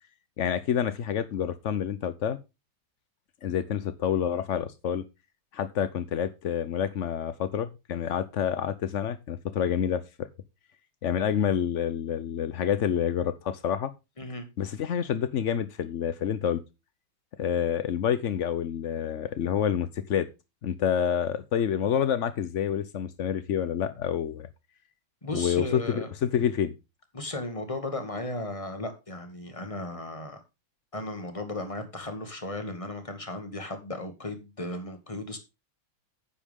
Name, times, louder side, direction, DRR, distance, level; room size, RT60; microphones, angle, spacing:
voice 1, 0.4-2.4 3.4-5.0 5.5-10.3 11.0-13.9 14.6-16.6 17.4-20.3 20.6-24.5 25.3-26.7, left 9 dB, 75° left, 0.6 m, -28 dB
voice 2, 25.2-26.1 27.1-30.4 30.9-35.4, left 2 dB, 15° left, 2.1 m, -35 dB
10.0 x 8.9 x 3.6 m
omnidirectional pair, 2.3 m